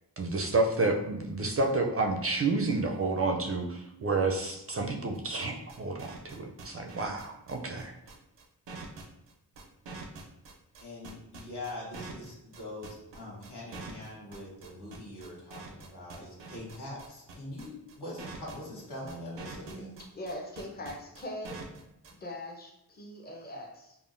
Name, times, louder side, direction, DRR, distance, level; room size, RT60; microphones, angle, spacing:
voice 1, 0.2-7.9, right 3 dB, 35° right, 2 dB, 0.4 m, -30 dB
sound 1, 5.1-22.1, right 4 dB, 90° right, 0.5 m, -45 dB
voice 2, 10.8-20.0, left 1 dB, 70° left, -6 dB, 1.2 m, -43 dB
voice 3, 20.0-21.7 22.1-24.0, left 1 dB, 25° left, 0 dB, 0.6 m, -41 dB
3.4 x 2.0 x 2.5 m, 0.88 s
cardioid pair, 40°, 41 cm